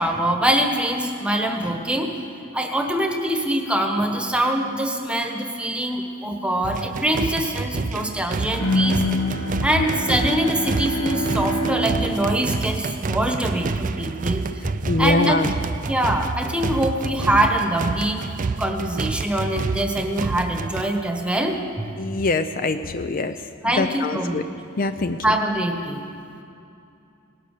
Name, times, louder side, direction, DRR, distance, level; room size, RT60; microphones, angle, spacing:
voice 1, 0.0-2.1 2.5-9.0 9.6-14.4 15.0-15.4 15.8-18.2 18.6-21.6 21.8-21.9 23.6-24.4 25.2-26.0, right 1 dB, 5° right, 3 dB, 1.2 m, -23 dB
sound 1, 6.6-20.8, right 4 dB, 40° right, 0.4 m, -28 dB
Bowed string instrument, 8.6-13.6, left 1 dB, 85° left, 1.6 m, -26 dB
voice 2, 14.9-15.5 22.0-23.3 23.8-24.4 24.8-25.2, left 3 dB, 45° left, 10 dB, 0.5 m, -23 dB
18.0 x 12.0 x 6.7 m, 2.6 s
head